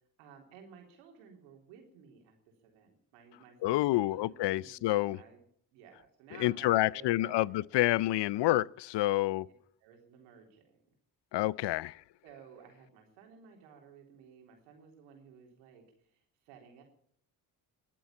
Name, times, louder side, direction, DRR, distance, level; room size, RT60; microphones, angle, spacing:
voice 1, 0.2-2.4 2.6-5.5 5.7-7.7 9.8-10.8 11.6-11.7 12.2-16.8, right 7 dB, 85° right, 3.8 m, -56 dB
voice 2, 3.6-5.2 6.4-9.5 11.3-11.9, left 16 dB, 60° left, 0.6 m, -28 dB
21.5 x 7.6 x 8.7 m
hypercardioid pair, 50°, 49 cm